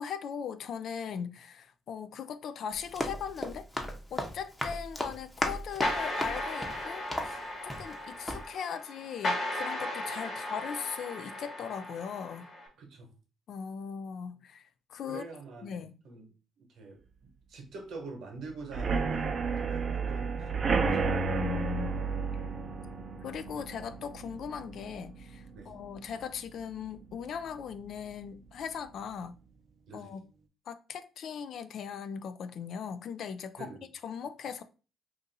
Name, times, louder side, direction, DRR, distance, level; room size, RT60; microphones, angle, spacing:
voice 1, 0.0-3.7 4.1-12.5 13.5-15.2 15.6-16.0 21.3-22.1 23.2-29.3 29.9-30.2 30.7-33.7 34.0-34.6, left 7 dB, 70° left, 0.3 m, -39 dB
Run, 2.7-8.0 8.3-8.4, left 1 dB, 10° left, 0.7 m, -36 dB
sound 1, 5.8-12.7, left 1 dB, 50° left, 1.1 m, -36 dB
voice 2, 12.8-13.1 15.1-16.3 16.6-21.1 25.5-25.7 29.9-30.1 33.6-33.8, right 3 dB, 75° right, 1.1 m, -45 dB
sound 2, 18.7-26.3 26.7-27.1 27.4-27.5 27.8-27.9, right 4 dB, 45° right, 0.5 m, -32 dB
2.6 x 2.6 x 4.0 m
cardioid pair, 90°, 0 cm